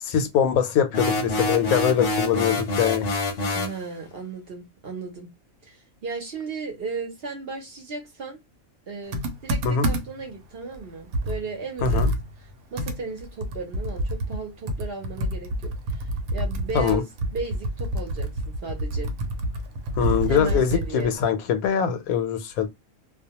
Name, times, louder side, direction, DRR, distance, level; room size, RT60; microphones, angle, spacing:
voice 1, 0.0-3.1 9.6-9.9 11.8-12.1 16.7-17.0 20.0-22.7, left 8 dB, 85° left, 1.0 m, -23 dB
sound 1, 0.9-3.8, left 2 dB, 55° left, 0.8 m, -26 dB
voice 2, 3.5-5.3 5.6-8.4 8.9-12.0 12.4-16.0 16.3-19.1 20.0-21.1, right 4 dB, 55° right, 0.8 m, -35 dB
Computer keyboard, 9.1-10.3 10.7-10.8 11.1-14.4 14.7-21.2, equal, 85° right, 1.0 m, -28 dB
2.4 x 2.2 x 2.8 m
omnidirectional pair, 1.5 m